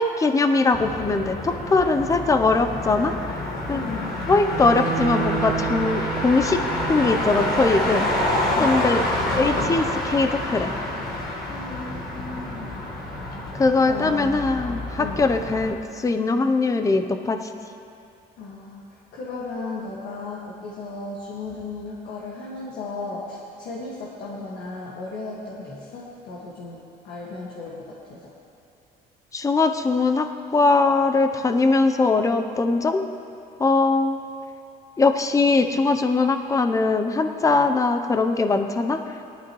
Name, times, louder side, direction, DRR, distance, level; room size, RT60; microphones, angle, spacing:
voice 1, 0.0-3.1 3.7-3.9 4.3-6.6 6.9-8.1 8.6-9.0 9.4-10.7 13.6-17.4 29.3-30.3 30.5-33.0 33.6-34.2 35.0-39.0, left 3 dB, 20° left, 7 dB, 0.7 m, -21 dB
Motor vehicle (road), 0.7-15.7, left 1 dB, 60° left, 1.5 m, -28 dB
voice 2, 3.7-4.2 8.5-8.8 11.5-12.7 13.8-14.5 15.0-15.3 18.4-28.3, left 3 dB, 80° left, -5 dB, 1.8 m, -35 dB
Bowed string instrument, 4.5-10.5, right 9 dB, 55° right, 0.9 m, -33 dB
18.5 x 12.0 x 3.1 m, 2.7 s
cardioid pair, 110°, 17 cm